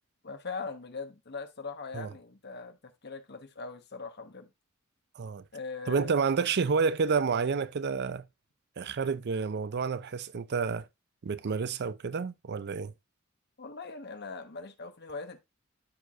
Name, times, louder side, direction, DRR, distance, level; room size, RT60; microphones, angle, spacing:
voice 1, 0.2-4.5 5.5-6.2 13.6-15.4, left 4 dB, 50° left, 1.2 m, -41 dB
voice 2, 5.9-8.2 8.8-10.9 11.2-12.9, right 5 dB, 50° right, 0.5 m, -29 dB
12.5 x 4.6 x 2.4 m
head